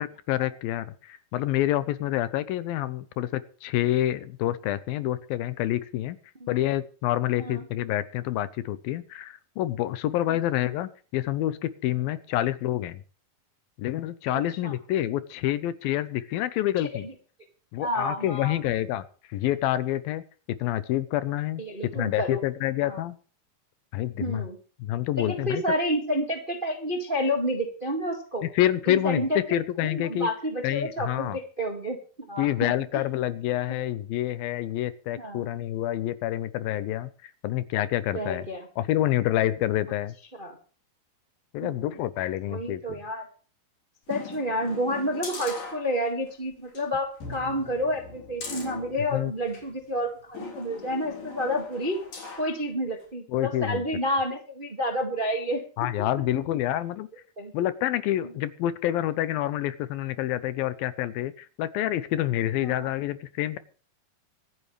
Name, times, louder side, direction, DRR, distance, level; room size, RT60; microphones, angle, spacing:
voice 1, 0.0-6.2 6.5-13.0 13.8-17.1 17.7-23.2 23.9-24.5 24.8-25.6 28.4-30.3 30.6-31.4 32.4-38.5 38.8-40.1 41.5-43.0 49.1-49.3 53.3-53.8 55.8-57.1 57.5-63.6, left 13 dB, 75° left, 15 dB, 2.4 m, -28 dB
voice 2, 14.3-14.7 16.8-17.1 17.8-18.6 21.6-22.4 22.8-23.0 24.2-24.6 25.2-28.5 28.9-29.4 29.8-32.0 32.3-33.0 35.2-35.5 38.1-38.7 40.4-40.6 41.6-42.0 42.5-43.2 44.1-52.0 52.4-55.6 57.4-57.5 62.6-62.9, equal, 30° right, 4 dB, 0.9 m, -30 dB
sound 1, 44.1-46.3 46.7-46.8 47.2-49.7 50.3-52.5 53.0-53.1, left 4 dB, 55° left, 5.6 m, -40 dB
24.5 x 9.8 x 3.2 m, 0.39 s
omnidirectional pair, 4.5 m